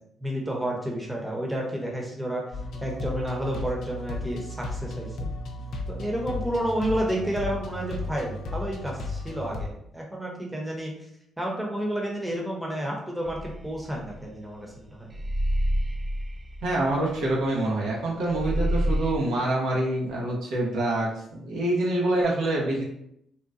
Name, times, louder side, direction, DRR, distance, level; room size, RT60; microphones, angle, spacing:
voice 1, 0.2-2.4 2.8-5.3 5.9-10.9 11.4-15.1, right 1 dB, 10° right, -1 dB, 0.8 m, -30 dB
sound 1, 2.5-9.7, left 2 dB, 75° left, 0.5 m, -34 dB
sound 2, 13.3-14.7 15.1-18.0 18.3-19.2, equal, 25° right, 0.3 m, -28 dB
voice 2, 16.6-22.8, right 1 dB, 85° right, -4 dB, 0.9 m, -26 dB
3.8 x 2.2 x 2.5 m, 0.75 s
cardioid pair, 90°, 0 cm